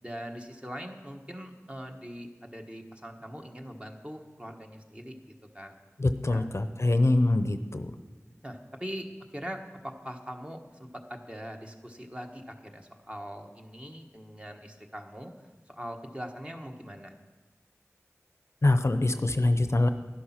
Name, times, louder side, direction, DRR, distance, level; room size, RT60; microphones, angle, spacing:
voice 1, 0.0-5.8 6.3-6.4 8.4-9.1 9.3-15.3 15.7-17.1, equal, 20° right, 3 dB, 1.4 m, -42 dB
voice 2, 6.0-7.9 18.6-19.9, left 2 dB, 60° left, 10 dB, 0.6 m, -24 dB
11.5 x 11.5 x 5.9 m, 1.3 s
wide cardioid pair, 40°, 5 cm